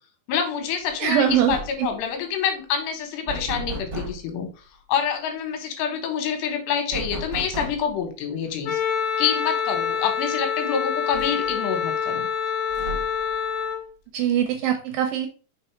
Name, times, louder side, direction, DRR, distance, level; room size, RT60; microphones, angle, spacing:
voice 1, 0.3-4.5 4.9-8.8 9.2-12.3, left 7 dB, 85° left, 5 dB, 3.4 m, -27 dB
sound 1, 0.8-1.0 1.3-1.9 3.3-4.3 6.9-8.0 9.5-9.6 10.0-10.1 11.1-11.8 12.7-13.3, right 2 dB, 25° right, 1.3 m, -34 dB
voice 2, 1.0-1.9 14.1-15.3, right 9 dB, 75° right, 6 dB, 2.1 m, -22 dB
Wind instrument woodwind instrument, 8.6-13.8, left 7 dB, 65° left, 2.9 m, -26 dB
6.0 x 4.1 x 4.5 m, 0.35 s
omnidirectional pair, 4.7 m